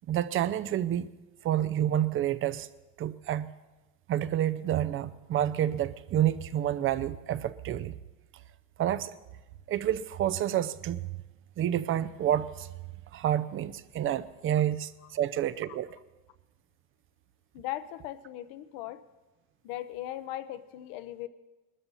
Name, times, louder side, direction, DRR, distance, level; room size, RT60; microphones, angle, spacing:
voice 1, 0.1-1.1 1.4-2.7 3.0-3.5 4.1-8.0 8.8-9.1 9.7-11.1 11.6-12.7 13.1-16.0, right 11 dB, 30° right, 0.6 m, -29 dB
voice 2, 17.5-19.0 19.6-21.3, left 14 dB, 55° left, 1.0 m, -38 dB
21.0 x 13.0 x 4.1 m
supercardioid pair, 120°, 42 cm